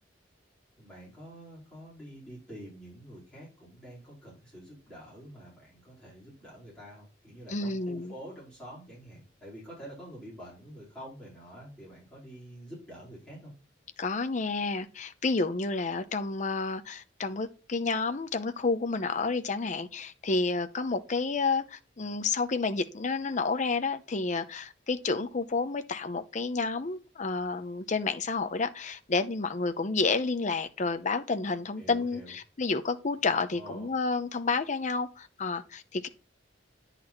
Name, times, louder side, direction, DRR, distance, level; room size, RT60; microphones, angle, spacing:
voice 1, 0.8-13.5 31.8-32.3 33.5-33.9, equal, 5° left, 4.6 m, -47 dB
voice 2, 7.5-8.1 14.0-36.1, left 4 dB, 40° left, 0.7 m, -30 dB
9.9 x 4.1 x 4.4 m
head